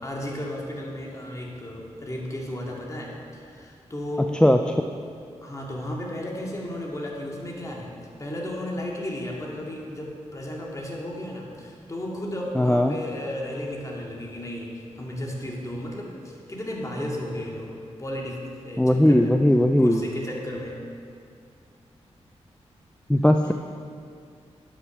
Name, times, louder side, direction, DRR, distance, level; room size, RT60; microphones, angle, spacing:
voice 1, 0.0-4.4 5.4-7.9 8.2-17.7 18.0-19.3 19.8-20.7 23.4-23.5, left 1 dB, 25° left, -2 dB, 2.2 m, -34 dB
voice 2, 12.5-12.9 18.8-20.0 23.1-23.5, left 1 dB, 5° left, 6 dB, 0.4 m, -18 dB
9.7 x 6.1 x 7.2 m, 2.3 s
cardioid pair, 60°, 12 cm